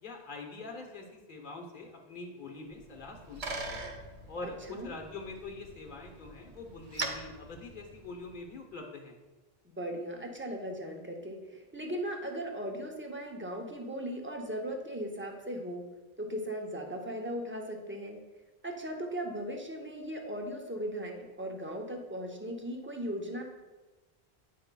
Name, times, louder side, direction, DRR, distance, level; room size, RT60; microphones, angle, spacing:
voice 1, 0.0-3.9 4.3-9.2, left 3 dB, 55° left, 2 dB, 1.0 m, -44 dB
Bicycle, 2.8-8.5, right 2 dB, 40° right, 0.8 m, -42 dB
voice 2, 9.8-15.8 16.2-18.2 18.6-23.4, equal, 15° right, 2 dB, 0.6 m, -38 dB
9.3 x 5.3 x 2.2 m, 1.2 s
omnidirectional pair, 1.0 m